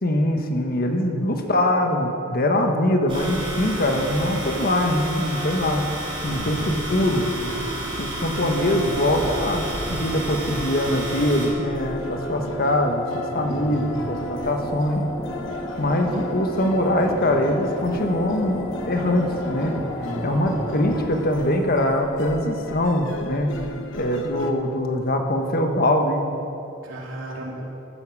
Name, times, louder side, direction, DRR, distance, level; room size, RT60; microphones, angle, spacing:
voice 1, 0.0-5.8 6.2-7.3 8.0-15.0 15.8-19.8 20.2-23.5 23.9-26.2, left 1 dB, 50° left, 4 dB, 1.4 m, -23 dB
sound 1, 3.1-11.5, right 1 dB, 25° right, 3.3 m, -31 dB
voice 2, 6.2-6.5 13.4-14.0 20.0-20.6 26.8-27.6, equal, 85° right, -2 dB, 2.9 m, -35 dB
sound 2, 6.4-24.5, left 1 dB, 70° left, 1.0 m, -38 dB
sound 3, 8.6-21.0, left 1 dB, 25° left, 1.4 m, -33 dB
14.5 x 13.0 x 4.9 m, 2.8 s
head